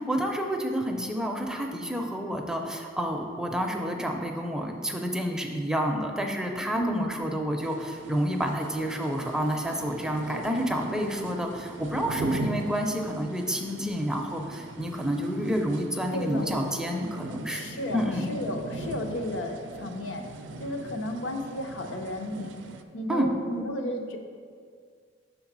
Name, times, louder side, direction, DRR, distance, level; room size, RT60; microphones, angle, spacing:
voice 1, 0.0-18.3 23.1-23.3, equal, 5° right, 2 dB, 0.4 m, -29 dB
voice 2, 6.7-7.1 16.1-16.6 17.5-20.2 20.6-22.5 22.9-24.2, left 1 dB, 85° left, 4 dB, 0.7 m, -33 dB
sound 1, 7.6-22.8, right 2 dB, 70° right, 0.4 m, -40 dB
5.7 x 3.9 x 6.0 m, 2.1 s
head